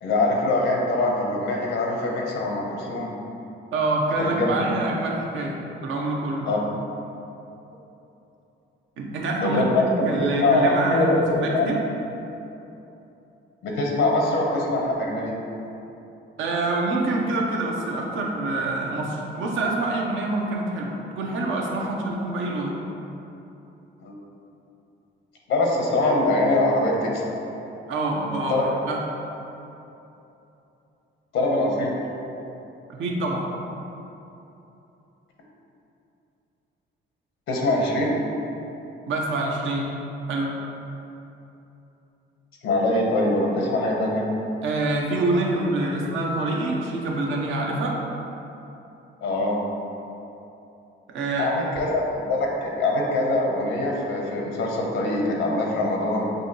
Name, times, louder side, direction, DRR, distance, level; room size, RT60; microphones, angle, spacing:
voice 1, 0.0-3.1 4.2-4.8 6.5-6.6 9.4-9.7 10.0-11.2 11.5-11.7 13.6-15.4 24.0-24.1 25.5-27.3 28.5-28.7 31.3-31.9 37.5-38.1 42.6-44.2 49.2-49.6 51.4-56.3, left 2 dB, 80° left, -1 dB, 0.8 m, -23 dB
voice 2, 3.7-6.5 9.0-11.8 16.4-22.7 27.9-29.0 32.9-33.5 39.1-39.9 40.3-40.5 44.6-48.0 51.1-51.7, right 2 dB, 80° right, -1 dB, 0.7 m, -26 dB
6.2 x 2.6 x 2.8 m, 2.9 s
cardioid pair, 90°, 20 cm